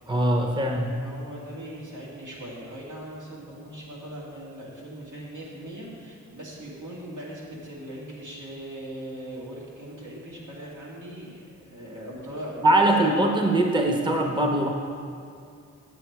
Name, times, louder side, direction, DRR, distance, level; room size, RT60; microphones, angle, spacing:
voice 1, 0.1-0.9 12.6-14.7, right 1 dB, 15° right, 2 dB, 0.8 m, -22 dB
voice 2, 1.0-13.3, right 1 dB, 80° right, -5 dB, 2.2 m, -39 dB
7.7 x 7.6 x 4.6 m, 2.4 s
wide cardioid pair, 90°, 30 cm